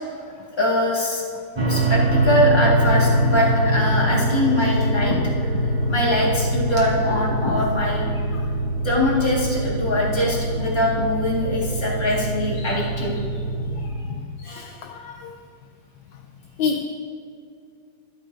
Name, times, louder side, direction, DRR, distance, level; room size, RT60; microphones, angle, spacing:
voice 1, 0.6-1.2 1.7-5.1 5.9-8.1 8.8-13.2, left 1 dB, 15° left, -4 dB, 1.6 m, -22 dB
sound 1, 1.6-13.9, right 1 dB, 40° right, 0.3 m, -23 dB
voice 2, 14.4-15.3 16.6-16.8, left 6 dB, 70° left, 4 dB, 1.2 m, -28 dB
12.5 x 12.0 x 2.7 m, 2.4 s
omnidirectional pair, 2.3 m